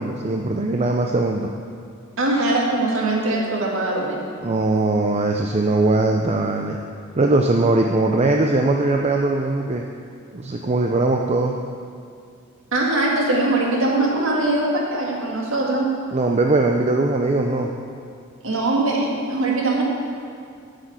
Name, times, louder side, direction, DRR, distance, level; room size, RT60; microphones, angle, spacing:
voice 1, 0.0-1.5 4.4-6.8 7.2-9.9 10.3-11.6 16.1-17.8, right 2 dB, 30° right, 2 dB, 0.5 m, -20 dB
voice 2, 2.2-4.4 12.7-15.9 18.4-19.8, right 2 dB, 65° right, -2 dB, 2.1 m, -21 dB
9.6 x 6.5 x 7.8 m, 2.3 s
head